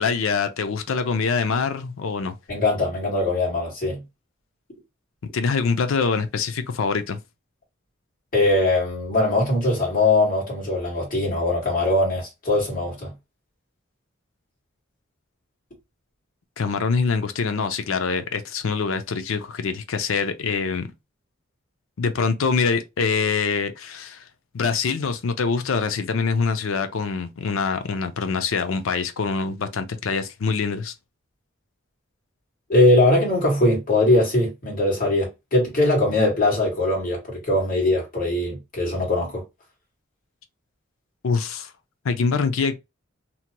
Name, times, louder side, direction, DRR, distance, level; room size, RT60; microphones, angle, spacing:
voice 1, 0.0-2.3 5.3-7.2 16.6-20.9 22.0-24.2 24.5-30.9 41.2-41.7 42.0-42.7, left 5 dB, 85° left, 0.5 m, -24 dB
voice 2, 2.5-4.0 8.3-13.1 32.7-39.4, left 2 dB, 45° left, 1.6 m, -21 dB
2.8 x 2.2 x 2.8 m
head